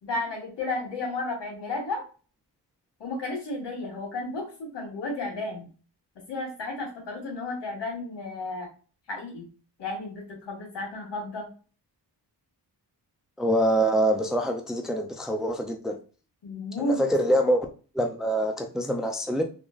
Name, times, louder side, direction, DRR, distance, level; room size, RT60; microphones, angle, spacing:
voice 1, 0.0-2.0 3.0-5.7 6.3-8.7 9.1-9.5 9.8-11.5 16.4-17.0, left 2 dB, 80° left, 1.8 m, -32 dB
voice 2, 13.4-16.0 16.9-17.7 17.9-19.4, right 1 dB, ahead, 0.5 m, -25 dB
3.6 x 2.9 x 2.5 m
cardioid pair, 70°, 42 cm